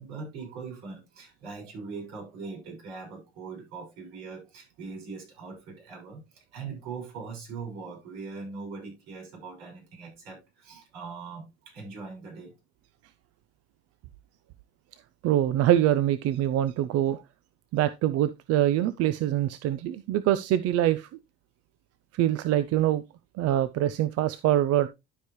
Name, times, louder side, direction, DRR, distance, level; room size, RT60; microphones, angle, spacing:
voice 1, 0.0-12.6, right 4 dB, 75° right, 6.2 m, -41 dB
voice 2, 15.2-17.2 17.7-21.1 22.1-23.0 23.4-24.9, right 12 dB, 50° right, 0.6 m, -24 dB
12.5 x 4.9 x 3.0 m
supercardioid pair, 100°, 31 cm